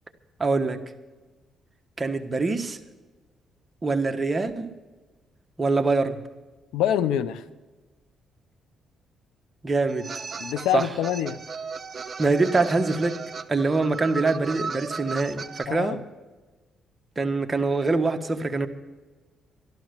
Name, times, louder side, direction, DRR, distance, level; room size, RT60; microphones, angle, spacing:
voice 1, 0.4-0.8 2.0-2.8 3.8-4.7 5.6-6.2 9.6-10.1 10.7-10.9 12.2-13.2 13.5-16.0 17.2-18.7, right 3 dB, 25° right, 6 dB, 1.4 m, -24 dB
voice 2, 6.7-7.4 10.4-11.4 15.7-16.0, left 11 dB, 85° left, 14 dB, 0.7 m, -25 dB
sound 1, 9.9-15.6, right 5 dB, 40° right, 1.0 m, -36 dB
13.0 x 12.0 x 6.6 m, 1.2 s
cardioid pair, 75°, 0 cm